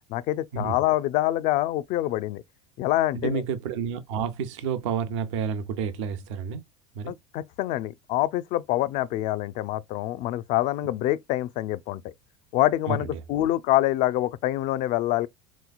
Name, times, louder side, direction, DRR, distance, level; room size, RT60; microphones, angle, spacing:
voice 1, 0.1-2.4 2.8-3.4 7.1-12.1 12.5-15.3, left 15 dB, 55° left, 0.4 m, -26 dB
voice 2, 3.1-6.6 6.9-7.1 12.9-13.2, right 6 dB, 80° right, 0.7 m, -30 dB
3.4 x 3.1 x 2.2 m
supercardioid pair, 95°, 15 cm